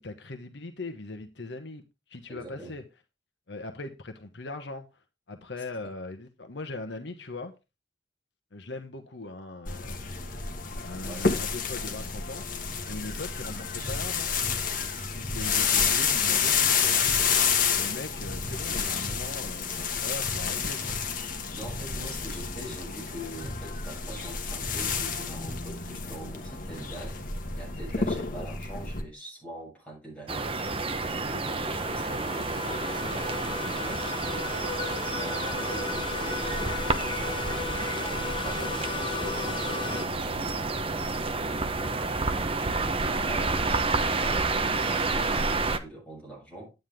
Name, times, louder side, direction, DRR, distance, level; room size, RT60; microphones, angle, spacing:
voice 1, 0.0-1.8 2.1-2.8 3.5-4.9 5.3-7.5 8.5-10.0 10.8-12.4 12.9-14.3 15.1-17.0 17.7-21.0, left 2 dB, 65° left, 1.2 m, -40 dB
voice 2, 2.3-2.7 11.0-11.2 21.5-27.2 27.6-33.3 33.6-34.7 35.1-36.4 36.8-37.3 37.6-42.0 42.4-43.6 44.1-46.7, right 1 dB, 5° left, 7.2 m, -43 dB
sound 1, 9.7-29.0, left 6 dB, 45° left, 1.5 m, -29 dB
sound 2, 30.3-45.8, right 3 dB, 30° right, 0.9 m, -29 dB
sound 3, 31.0-40.1, left 5 dB, 25° left, 0.4 m, -36 dB
9.7 x 9.3 x 3.5 m
head